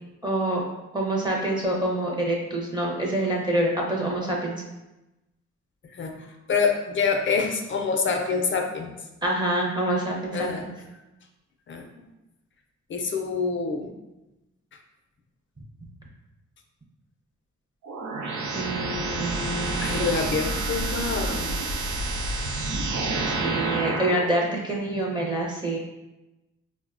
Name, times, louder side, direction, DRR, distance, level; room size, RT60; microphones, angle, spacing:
voice 1, 0.2-0.6 0.9-4.5 9.2-10.7 18.5-20.1 23.3-25.8, right 1 dB, 15° right, -3 dB, 0.6 m, -26 dB
voice 2, 5.9-8.9 10.3-10.7 11.7-11.8 12.9-13.9 19.8-21.6, left 5 dB, 45° left, 3 dB, 0.4 m, -26 dB
sound 1, 17.8-24.3, right 2 dB, 70° right, 0.6 m, -28 dB
3.9 x 2.1 x 2.4 m, 0.99 s
cardioid pair, 95°, 29 cm